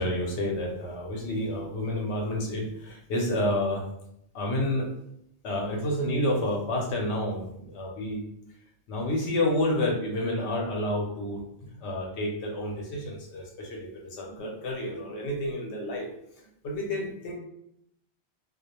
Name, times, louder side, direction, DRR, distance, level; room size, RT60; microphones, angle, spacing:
voice 1, 0.0-3.8 4.3-4.9 5.4-8.2 8.9-11.4 11.8-16.1 16.4-17.4, left 1 dB, 80° left, 0 dB, 0.9 m, -29 dB
2.3 x 2.1 x 2.8 m, 0.75 s
omnidirectional pair, 1.2 m